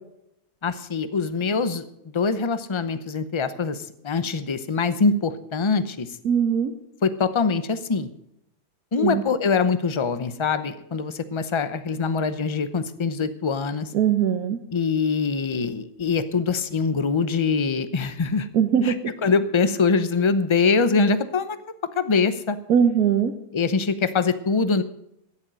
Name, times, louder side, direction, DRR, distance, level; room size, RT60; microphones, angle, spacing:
voice 1, 0.6-1.8 2.1-6.1 7.0-8.1 8.9-13.9 14.7-18.5 18.8-18.9 19.2-21.6 22.0-22.6 23.5-24.8, left 4 dB, 40° left, 12 dB, 0.4 m, -23 dB
voice 2, 6.2-6.7 9.0-9.2 13.9-14.6 18.5-19.0 22.7-23.3, right 8 dB, 65° right, 7 dB, 1.3 m, -20 dB
13.0 x 10.5 x 6.2 m, 0.80 s
omnidirectional pair, 1.7 m